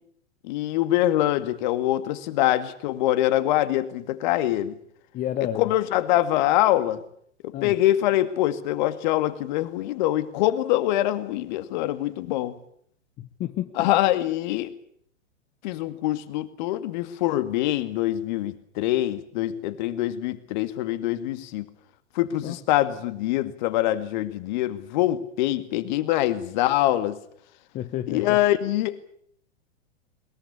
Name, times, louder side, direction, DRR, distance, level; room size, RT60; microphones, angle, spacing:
voice 1, 0.4-4.8 5.6-7.0 7.6-12.5 13.8-14.7 15.6-21.6 22.2-27.2 28.1-29.0, left 14 dB, 40° left, 12 dB, 2.1 m, -24 dB
voice 2, 5.1-5.7 7.5-7.7 13.2-13.9 22.4-22.6 27.7-28.4, left 11 dB, 25° left, 10 dB, 1.1 m, -30 dB
22.0 x 21.5 x 8.5 m, 0.65 s
figure-of-eight pair, 100°, 35 cm